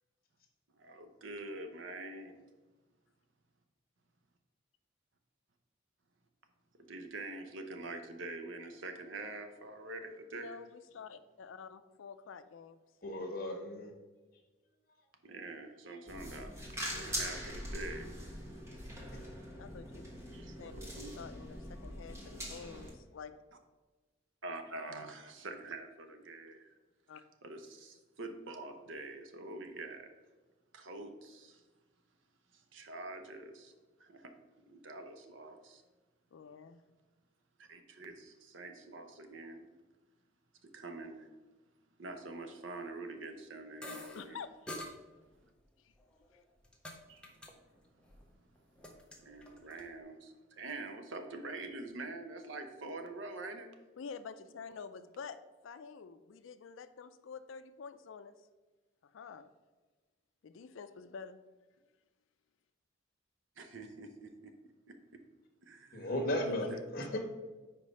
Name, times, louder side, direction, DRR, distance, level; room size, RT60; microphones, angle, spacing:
voice 1, 0.7-2.3 6.8-10.6 15.2-16.5 16.8-18.2 20.3-21.1 24.4-26.7 27.4-30.1 30.7-31.6 32.5-33.7 34.0-35.8 37.6-39.7 40.6-41.3 42.0-44.4 47.0-47.4 47.9-48.0 49.2-53.7 63.6-64.5 64.9-65.2 65.6-66.1 66.5-66.8, right 2 dB, 75° right, 6 dB, 0.8 m, -45 dB
voice 2, 10.3-12.8 19.6-20.1 20.6-20.7 21.2-23.3 27.1-27.2 36.3-36.8 44.1-45.0 45.8-45.9 54.0-58.3 59.0-59.5 60.4-61.4 66.5-66.7 67.1-67.2, left 6 dB, 80° left, 11 dB, 0.4 m, -48 dB
voice 3, 13.0-13.9 65.9-67.2, left 1 dB, 45° left, 2 dB, 1.2 m, -35 dB
sound 1, 16.1-22.9, equal, 15° right, 1.1 m, -43 dB
sound 2, 43.8-44.2 44.7-44.9 45.9-47.0 47.2-47.5 47.8-48.2 48.6-49.8, left 1 dB, 5° left, 0.6 m, -46 dB
5.1 x 4.5 x 5.3 m, 1.2 s
head